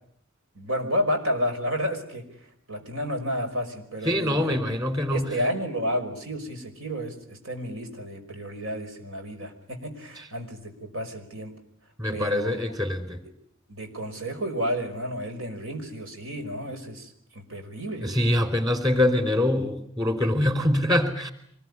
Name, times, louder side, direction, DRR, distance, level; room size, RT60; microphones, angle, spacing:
voice 1, 0.6-2.3 2.7-4.6 5.1-11.5 12.1-12.6 13.7-18.1, equal, 85° right, 5 dB, 5.5 m, -31 dB
voice 2, 4.0-5.3 10.2-10.3 12.0-13.2 18.0-21.3, left 1 dB, 20° right, 8 dB, 4.3 m, -24 dB
26.0 x 21.0 x 9.9 m, 0.66 s
head